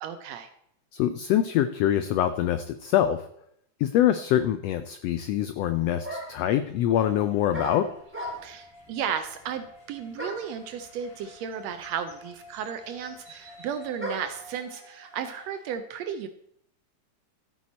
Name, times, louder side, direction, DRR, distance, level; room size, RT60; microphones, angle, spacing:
voice 1, 0.0-0.5 8.4-16.3, right 8 dB, 75° right, 9 dB, 1.6 m, -34 dB
voice 2, 0.9-3.3 3.8-7.9, left 11 dB, 85° left, 11 dB, 1.4 m, -24 dB
sound 1, 6.0-6.5 7.5-8.7 10.2-10.6 11.5-11.6 11.8-14.4, right 1 dB, 5° right, 2.3 m, -37 dB
sound 2, 6.9-15.7, left 2 dB, 60° left, 7.0 m, -52 dB
13.0 x 8.5 x 4.2 m, 0.73 s
omnidirectional pair, 3.4 m